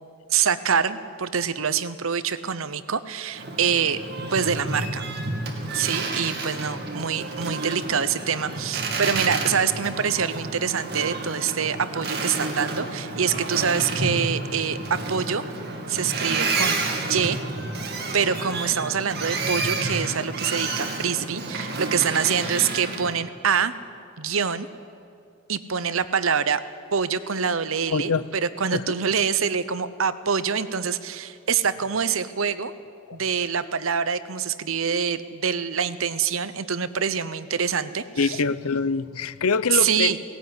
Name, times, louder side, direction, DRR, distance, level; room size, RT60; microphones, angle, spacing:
voice 1, 0.3-5.0 5.7-15.4 15.9-16.8 17.1-17.4 17.8-23.7 24.2-24.7 25.5-26.6 26.9-32.7 33.1-38.4 39.7-40.2, right 7 dB, 70° right, 14 dB, 0.8 m, -25 dB
Boat Water vehicle, 3.3-23.2, right 3 dB, 45° right, 2.3 m, -30 dB
voice 2, 27.9-28.2 28.7-28.8 38.2-40.1, left 4 dB, 85° left, 16 dB, 0.7 m, -24 dB
17.5 x 16.5 x 9.7 m, 2.3 s
head